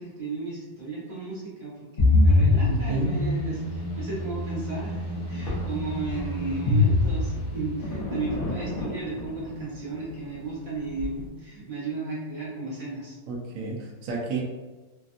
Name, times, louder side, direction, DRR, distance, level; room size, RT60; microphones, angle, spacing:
voice 1, 0.0-13.2, right 3 dB, 30° right, -9 dB, 1.0 m, -34 dB
sound 1, 2.0-7.9, left 2 dB, 35° left, 0.7 m, -24 dB
voice 2, 2.7-3.2 13.3-14.4, right 4 dB, 70° right, -2 dB, 0.7 m, -31 dB
sound 2, 5.4-11.3, left 1 dB, 90° left, 0.5 m, -37 dB
3.3 x 2.4 x 2.5 m, 1.2 s
omnidirectional pair, 2.0 m